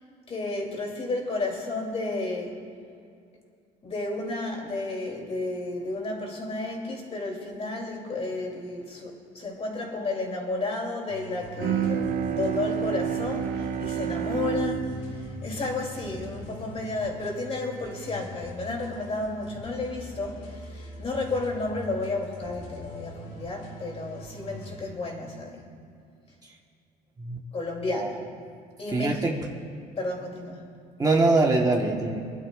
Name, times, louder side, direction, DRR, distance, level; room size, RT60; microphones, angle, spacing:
voice 1, 0.3-2.6 3.8-25.6 27.5-28.2 28.8-29.2 30.0-30.6, left 2 dB, 35° left, 0 dB, 2.9 m, -32 dB
Arcade Trap Loop, 11.1-24.8, left 2 dB, 85° left, 3.4 m, -43 dB
Bowed string instrument, 11.6-17.0, right 9 dB, 55° right, 0.8 m, -30 dB
voice 2, 28.9-29.3 31.0-32.2, right 2 dB, 20° right, 0 dB, 1.3 m, -23 dB
26.0 x 11.5 x 2.5 m, 2.4 s
cardioid pair, 110°, 17 cm